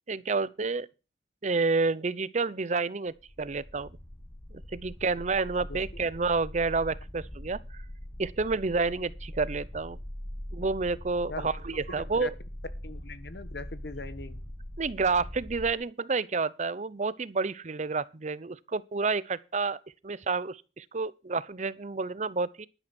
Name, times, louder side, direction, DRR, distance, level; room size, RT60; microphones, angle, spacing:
voice 1, 0.1-0.9 1.4-3.9 4.5-7.6 8.2-10.0 10.5-12.3 14.8-19.8 20.0-22.7, right 4 dB, 40° right, 0.6 m, -29 dB
sound 1, 3.2-15.7, equal, 10° left, 1.0 m, -42 dB
voice 2, 11.9-12.3 12.8-14.4, left 3 dB, 65° left, 1.4 m, -40 dB
12.0 x 10.5 x 4.3 m
head